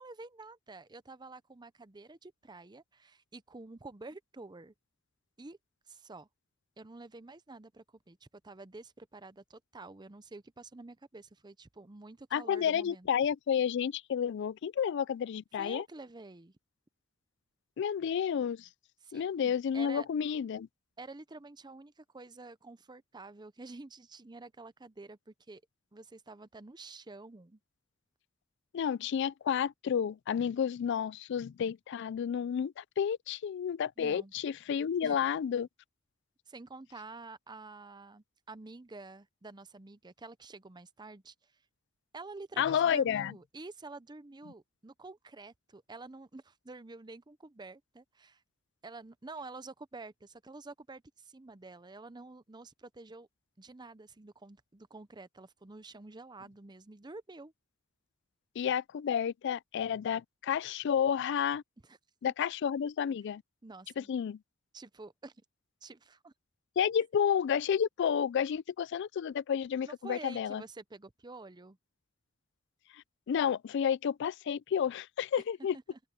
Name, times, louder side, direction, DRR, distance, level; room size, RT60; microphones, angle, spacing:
voice 1, 0.0-4.7 5.4-5.6 5.9-6.3 6.8-13.1 15.6-16.5 19.0-20.1 21.0-25.6 25.9-27.6 34.0-34.3 35.0-35.2 36.5-41.3 42.1-48.4 48.8-53.3 53.6-57.5 61.9-62.0 63.6-64.1 64.7-65.4 65.8-66.3 69.8-71.8 75.7-76.0, right 3 dB, 20° right, 0.7 m, -49 dB
voice 2, 12.3-15.8 17.8-18.7 19.1-20.7 28.7-35.7 42.6-43.3 58.6-61.6 62.2-63.4 64.0-64.4 66.8-70.6 72.9-75.8, left 8 dB, 60° left, 0.3 m, -31 dB
open air
head